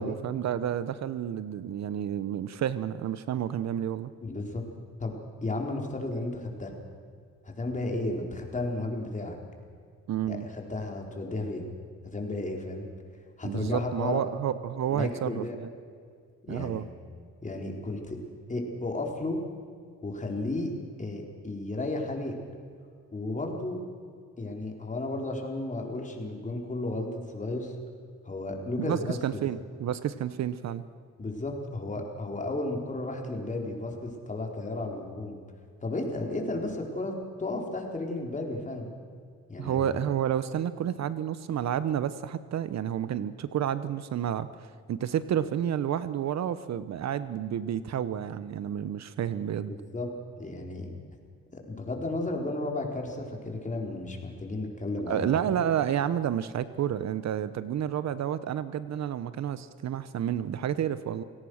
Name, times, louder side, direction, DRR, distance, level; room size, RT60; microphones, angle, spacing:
voice 1, 0.0-4.1 10.1-10.5 13.4-15.7 16.5-16.9 28.8-30.8 39.6-44.5 44.9-49.7 55.1-61.2, right 9 dB, 60° right, 14 dB, 0.9 m, -30 dB
voice 2, 4.2-4.6 5.0-5.1 5.4-6.7 7.4-9.4 10.3-11.7 12.0-12.9 13.4-14.2 14.9-15.6 16.5-16.8 17.4-18.2 18.5-19.4 20.0-20.7 21.0-22.4 23.1-23.8 24.4-27.8 28.2-29.4 31.2-35.4 35.8-38.9 39.5-39.8 49.7-50.1 50.4-50.9 51.5-55.6, left 2 dB, 25° left, 1 dB, 4.3 m, -33 dB
28.0 x 17.5 x 6.5 m, 2.2 s
cardioid pair, 90°, 30 cm